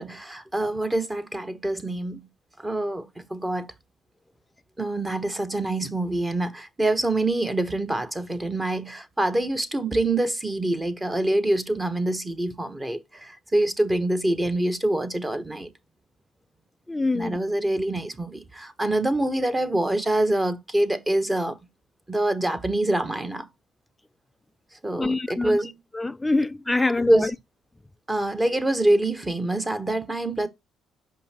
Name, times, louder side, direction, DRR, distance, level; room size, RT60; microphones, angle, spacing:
voice 1, 0.0-2.2 2.6-3.7 4.8-15.7 17.1-21.6 22.1-23.5 24.8-25.8 27.1-27.3 28.1-30.5, right 1 dB, 15° right, 1.2 m, -25 dB
voice 2, 16.9-17.4 25.0-25.6 25.9-27.3, left 2 dB, 10° left, 0.4 m, -25 dB
5.9 x 5.4 x 4.3 m
cardioid pair, 105°, 0 cm